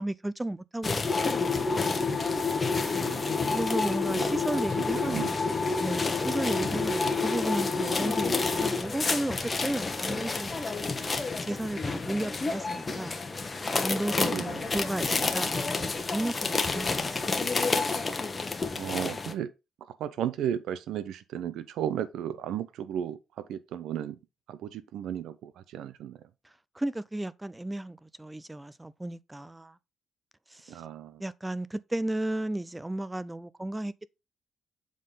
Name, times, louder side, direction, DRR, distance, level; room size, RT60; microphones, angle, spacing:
voice 1, 0.0-1.9 3.5-5.5 5.8-10.9 11.4-13.2 13.8-17.4 26.7-29.8 30.5-30.8 31.2-34.1, right 1 dB, 10° right, 0.5 m, -34 dB
sound 1, 0.8-19.3, left 4 dB, 30° left, 1.1 m, -29 dB
voice 2, 3.0-3.5 4.1-4.6 5.1-5.3 6.7-6.9 14.2-14.6 18.7-19.5 20.0-24.2 24.5-26.2 30.7-31.2, right 10 dB, 80° right, 0.6 m, -35 dB
7.2 x 3.9 x 4.0 m
cardioid pair, 90°, 0 cm